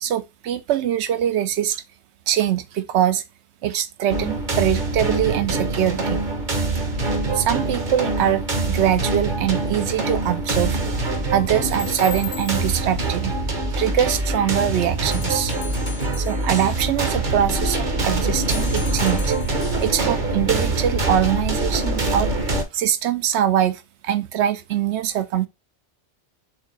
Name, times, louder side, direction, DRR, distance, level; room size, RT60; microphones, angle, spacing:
voice 1, 0.0-1.8 2.3-3.2 3.6-6.2 7.3-10.8 11.3-13.3 13.7-15.5 16.2-19.3 19.8-22.3 22.7-25.5, right 10 dB, 75° right, 0.9 m, -23 dB
sound 1, 4.1-22.6, right 2 dB, 45° right, 1.0 m, -24 dB
sound 2, 11.6-13.0 15.1-16.8 18.4-19.9, left 6 dB, 70° left, 1.0 m, -38 dB
4.6 x 3.5 x 3.1 m
omnidirectional pair, 1.2 m